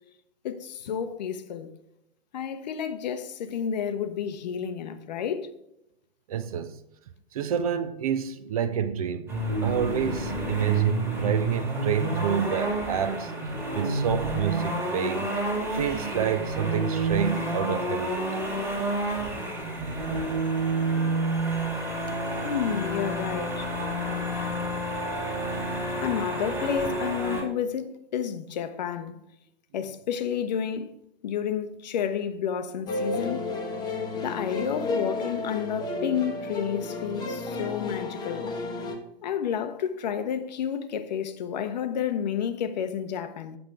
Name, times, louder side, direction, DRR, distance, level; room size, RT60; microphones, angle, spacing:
voice 1, 0.4-1.7 2.3-5.5 22.1-22.2 22.4-23.7 26.0-29.2 29.7-30.9 31.2-33.4 34.2-38.5 39.2-43.6, left 8 dB, 45° left, 0.8 m, -30 dB
voice 2, 6.3-6.7 7.3-9.3 9.6-13.3 13.7-15.3 15.6-18.4, right 8 dB, 35° right, 0.5 m, -28 dB
sound 1, 9.3-27.4, right 2 dB, 5° right, 1.9 m, -29 dB
sound 2, 32.9-39.0, left 2 dB, 15° left, 0.9 m, -32 dB
8.5 x 6.0 x 5.0 m
figure-of-eight pair, 120°, 31 cm